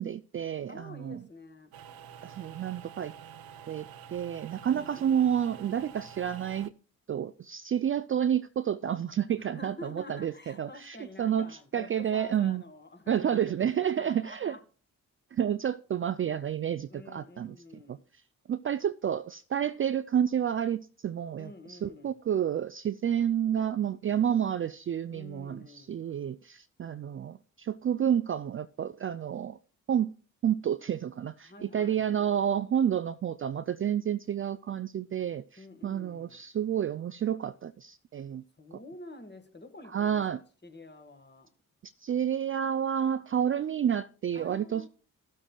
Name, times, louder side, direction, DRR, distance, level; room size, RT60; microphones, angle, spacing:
voice 1, 0.0-1.2 2.2-3.1 3.7-6.7 7.1-12.6 13.1-14.6 15.3-18.0 18.5-29.6 29.9-30.1 30.4-38.4 39.9-40.4 41.8-44.9, right 9 dB, 35° right, 0.4 m, -30 dB
voice 2, 0.7-1.7 4.7-5.2 9.3-13.6 14.0-14.6 16.9-18.1 21.3-22.2 25.1-25.9 31.4-32.1 35.6-36.4 38.6-40.2 40.6-41.5 44.3-44.9, left 2 dB, 25° left, 1.7 m, -48 dB
pool pump loop, 1.7-6.7, right 8 dB, 70° right, 0.7 m, -48 dB
16.0 x 7.3 x 2.3 m
hypercardioid pair, 45°, 39 cm